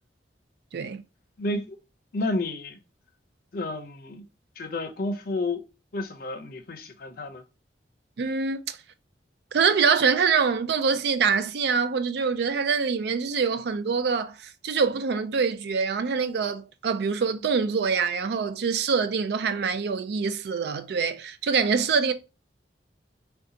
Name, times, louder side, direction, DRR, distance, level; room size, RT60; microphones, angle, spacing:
voice 1, 1.4-1.8 2.1-2.8 3.5-4.2 4.6-5.6 5.9-7.4, left 2 dB, 55° left, 0.5 m, -31 dB
voice 2, 8.2-8.8 9.5-22.1, right 5 dB, 65° right, 0.4 m, -25 dB
3.8 x 2.2 x 2.6 m
head